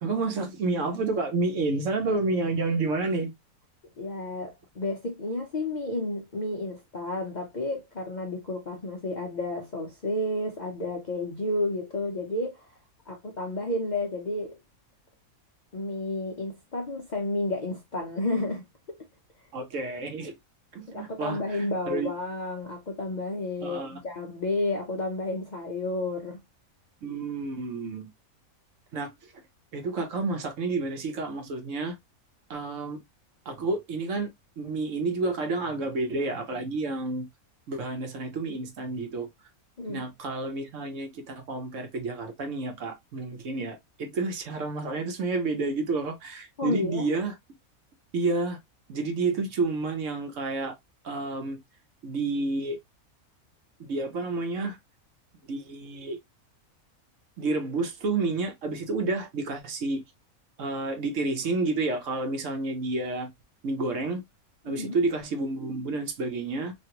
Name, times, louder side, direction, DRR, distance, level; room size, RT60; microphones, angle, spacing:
voice 1, 0.0-3.3 19.5-20.3 20.7-22.1 23.6-24.0 27.0-28.1 28.9-29.4 29.7-31.9 32.5-33.0 33.5-37.3 37.7-39.3 39.9-47.3 48.1-48.6 48.9-50.7 51.0-51.6 52.0-52.8 53.8-54.8 55.5-56.2 57.4-60.0 60.6-63.3 63.6-64.2 64.6-66.7, right 3 dB, 60° right, 1.1 m, -30 dB
voice 2, 4.0-12.7 13.1-14.6 15.7-18.6 20.9-26.4 39.8-40.1 43.6-43.7 46.6-47.1 64.7-64.9, left 2 dB, 50° left, 0.5 m, -31 dB
3.1 x 2.5 x 2.8 m
omnidirectional pair, 1.5 m